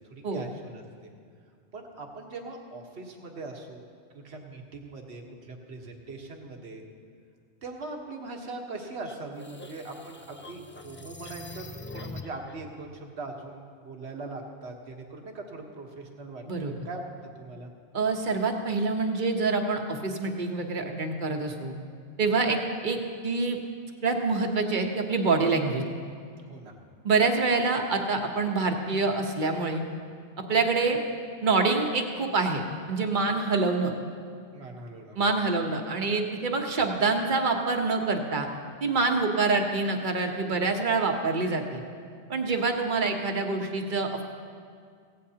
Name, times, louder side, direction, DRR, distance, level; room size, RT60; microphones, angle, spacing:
voice 1, 0.1-1.1 1.7-3.8 4.1-6.8 7.6-17.0 17.4-17.7 26.5-26.7 34.5-35.2, right 3 dB, 70° right, 2 dB, 1.5 m, -41 dB
sound 1, 9.0-12.5, left 2 dB, 20° left, 0.3 m, -43 dB
voice 2, 17.9-21.7 22.2-23.0 23.2-23.6 24.0-25.8 27.0-29.8 30.4-31.0 31.4-33.9 35.1-38.5 38.8-41.8 42.3-44.2, right 3 dB, 45° right, 3 dB, 1.2 m, -26 dB
16.5 x 16.0 x 2.9 m, 2.1 s
omnidirectional pair, 1.1 m